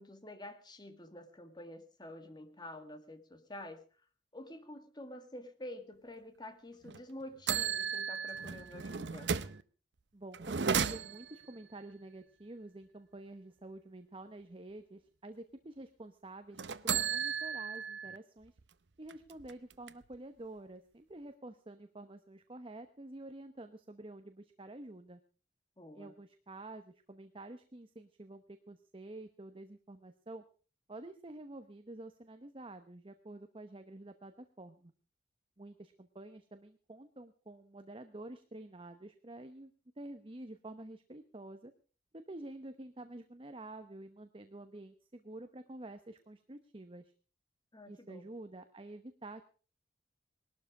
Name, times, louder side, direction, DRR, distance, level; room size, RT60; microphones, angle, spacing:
voice 1, 0.0-3.8 4.3-9.3 25.8-26.1 47.7-48.3, left 1 dB, 25° left, 8 dB, 1.9 m, -48 dB
sound 1, 6.8-7.0 7.5-9.6 10.3-11.4 16.6-18.2 18.6-18.7 19.1-20.1, right 7 dB, 70° right, 0.8 m, -35 dB
voice 2, 10.1-18.5 19.0-25.2 25.9-30.4 30.9-34.9 35.6-39.7 40.0-41.7 42.1-47.1 47.9-49.4, right 2 dB, 30° right, 8 dB, 0.9 m, -49 dB
20.0 x 12.5 x 4.9 m, 0.38 s
head